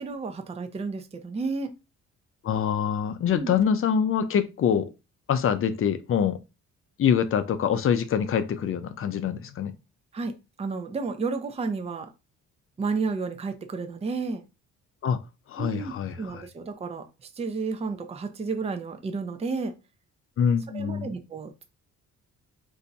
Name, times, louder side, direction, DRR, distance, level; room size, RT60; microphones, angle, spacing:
voice 1, 0.0-1.7 3.3-3.5 10.1-12.1 12.8-14.4 15.6-17.1 17.4-19.7 20.7-21.6, right 4 dB, 20° right, 0.5 m, -32 dB
voice 2, 2.4-4.9 5.3-6.4 7.0-9.7 15.0-15.2 15.5-16.4 20.4-21.1, left 8 dB, 45° left, 0.5 m, -25 dB
2.6 x 2.2 x 3.9 m
cardioid pair, 90°, 30 cm